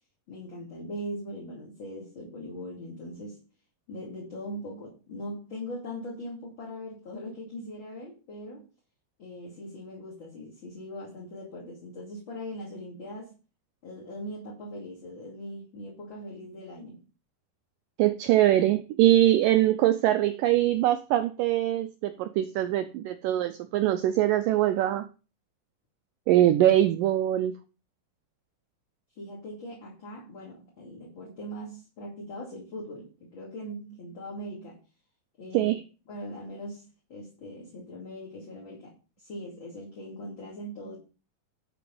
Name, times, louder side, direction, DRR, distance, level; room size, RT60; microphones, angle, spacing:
voice 1, 0.3-3.4 3.9-8.7 9.2-13.4 13.8-17.0 29.2-34.8 35.4-35.7 36.1-41.0, equal, 35° left, -3 dB, 2.7 m, -40 dB
voice 2, 18.0-25.1 26.3-27.5 35.5-35.8, right 13 dB, 85° right, 10 dB, 1.9 m, -23 dB
11.5 x 5.1 x 5.4 m, 0.33 s
omnidirectional pair, 4.6 m